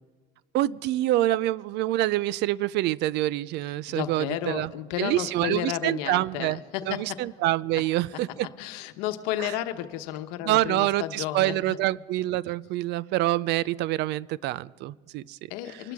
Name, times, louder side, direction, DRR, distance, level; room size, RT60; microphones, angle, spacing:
voice 1, 0.5-4.7 5.0-6.6 6.9-8.5 9.4-9.5 10.4-15.4, right 15 dB, 55° right, 22 dB, 0.4 m, -26 dB
voice 2, 3.9-7.3 8.6-11.8 15.5-15.9, left 13 dB, 80° left, 9 dB, 1.1 m, -32 dB
24.0 x 12.5 x 3.6 m, 1.5 s
supercardioid pair, 105°, 21 cm